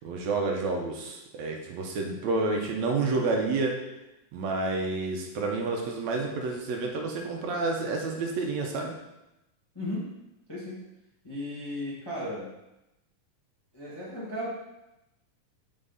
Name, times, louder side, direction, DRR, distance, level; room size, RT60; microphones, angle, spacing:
voice 1, 0.0-3.7 4.3-8.9, right 3 dB, 70° right, 1 dB, 1.9 m, -29 dB
voice 2, 9.7-10.1 10.5-10.8 11.2-12.5 13.7-14.5, left 1 dB, 20° left, -7 dB, 0.7 m, -35 dB
7.6 x 4.7 x 4.0 m, 0.93 s
omnidirectional pair, 3.8 m